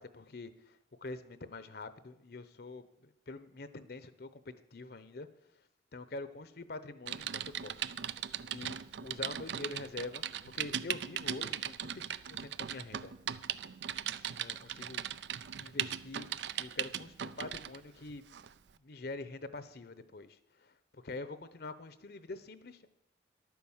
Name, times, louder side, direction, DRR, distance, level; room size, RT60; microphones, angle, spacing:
voice 1, 0.0-4.4 4.7-5.3 5.9-7.9 8.5-13.1 14.4-15.0 15.6-16.3 16.6-18.2 18.8-22.9, left 2 dB, 60° left, 13 dB, 0.8 m, -45 dB
Typing, 7.1-17.8 18.3-18.5, right 9 dB, 70° right, 0.5 m, -38 dB
11.5 x 9.4 x 7.2 m, 0.83 s
head